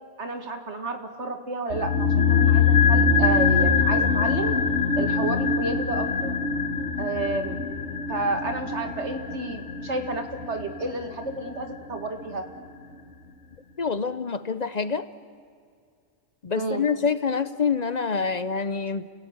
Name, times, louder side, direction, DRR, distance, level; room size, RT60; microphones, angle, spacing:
voice 1, 0.2-4.6 5.0-6.3 7.0-7.6 8.1-12.4 16.6-16.9, right 2 dB, 90° right, 7 dB, 2.2 m, -31 dB
sound 1, 1.7-12.0 12.2-12.3, left 5 dB, 90° left, 1.8 m, -23 dB
voice 2, 13.8-15.1 16.4-19.1, left 5 dB, 45° left, 14 dB, 0.7 m, -26 dB
29.0 x 16.5 x 9.5 m, 2.2 s
omnidirectional pair, 1.1 m